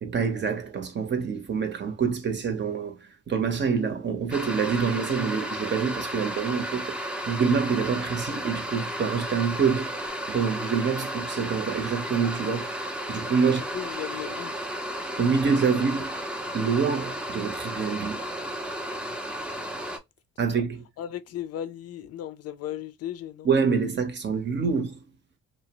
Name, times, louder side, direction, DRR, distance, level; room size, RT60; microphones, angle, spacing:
voice 1, 0.0-9.9 10.3-12.7 13.1-13.6 15.2-16.1 16.5-18.2 20.4-20.8 23.4-25.0, right 6 dB, 35° right, 0.8 m, -26 dB
sound 1, 4.3-20.0, equal, 5° right, 0.5 m, -33 dB
voice 2, 13.4-14.6 19.3-19.4 21.0-23.5, left 11 dB, 55° left, 0.5 m, -36 dB
2.7 x 2.0 x 2.8 m
cardioid pair, 90°, 30 cm